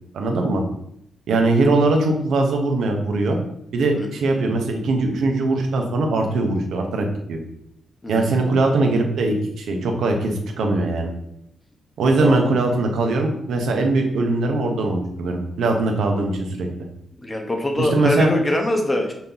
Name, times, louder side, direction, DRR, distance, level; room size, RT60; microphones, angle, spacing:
voice 1, 0.1-0.6 1.3-3.4 3.7-7.4 8.1-11.1 12.0-16.7 17.8-18.3, right 2 dB, 85° right, 3 dB, 1.1 m, -21 dB
voice 2, 8.0-8.4 12.2-12.4 17.2-19.1, left 1 dB, 15° left, 3 dB, 1.0 m, -23 dB
6.1 x 3.0 x 5.5 m, 0.75 s
wide cardioid pair, 140°, 0 cm